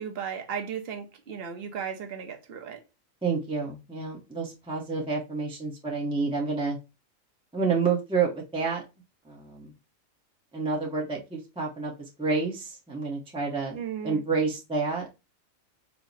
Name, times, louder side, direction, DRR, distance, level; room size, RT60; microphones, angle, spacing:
voice 1, 0.0-2.8 13.7-14.2, right 7 dB, 50° right, 0.9 m, -35 dB
voice 2, 3.2-6.8 7.5-8.8 9.3-9.7 10.5-15.0, right 4 dB, 5° right, 0.6 m, -29 dB
4.6 x 2.0 x 3.9 m
omnidirectional pair, 1.4 m